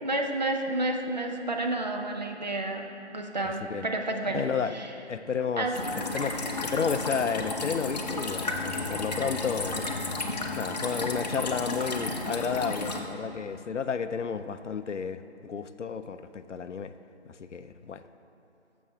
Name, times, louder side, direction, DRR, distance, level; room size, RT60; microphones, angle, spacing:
voice 1, 0.0-2.9 3.1-4.4 4.7-4.9 5.6-5.7, right 2 dB, 40° right, 2 dB, 0.7 m, -30 dB
voice 2, 4.3-4.8 5.1-5.7 6.1-9.9 10.6-16.9 17.4-18.0, left 6 dB, 90° left, 11 dB, 0.5 m, -32 dB
sound 1, 5.7-13.0, left 2 dB, 35° left, 0.7 m, -32 dB
12.5 x 7.0 x 3.4 m, 2.9 s
figure-of-eight pair, 160°, 35 cm